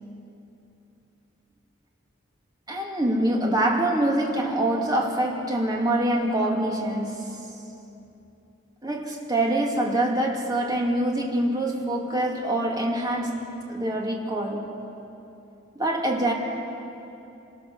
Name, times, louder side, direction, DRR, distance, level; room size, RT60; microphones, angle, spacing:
voice 1, 2.7-7.4 8.8-14.7 15.8-16.3, right 1 dB, 20° right, 2.4 m, -25 dB
26.5 x 20.5 x 6.6 m
head